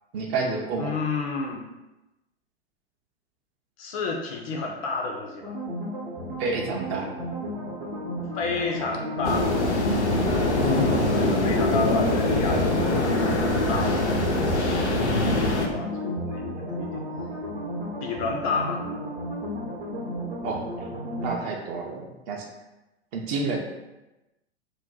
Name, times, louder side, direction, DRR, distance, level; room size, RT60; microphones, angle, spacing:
voice 1, 0.1-0.9 6.4-7.1 20.4-20.6 21.2-22.5 23.1-23.6, right 4 dB, 30° right, 0 dB, 0.5 m, -29 dB
voice 2, 0.8-1.6 3.8-5.5 8.3-9.5 10.3-10.6 11.0-13.3 13.7-17.0 18.0-18.9, left 3 dB, 35° left, 0 dB, 0.4 m, -31 dB
sound 1, 5.4-21.4, equal, 65° right, 0.8 m, -33 dB
sound 2, 9.2-15.7, left 2 dB, 90° left, 0.6 m, -23 dB
2.6 x 2.1 x 3.8 m, 1.0 s
figure-of-eight pair, 100°, 33 cm